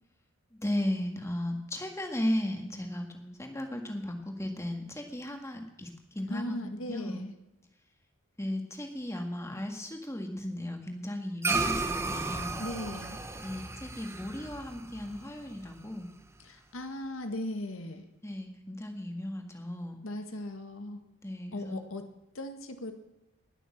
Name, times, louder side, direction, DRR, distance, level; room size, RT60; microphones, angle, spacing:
voice 1, 0.5-7.3 8.4-12.6 13.4-16.1 18.2-20.0 21.2-21.8, left 1 dB, 15° left, 4 dB, 1.8 m, -36 dB
voice 2, 6.3-7.3 12.6-13.2 16.4-18.0 20.0-21.0 21.5-22.1 22.3-22.9, left 1 dB, 75° left, 7 dB, 1.7 m, -38 dB
sound 1, 11.4-16.1, right 3 dB, 10° right, 0.7 m, -34 dB
19.5 x 6.9 x 7.3 m, 0.96 s
head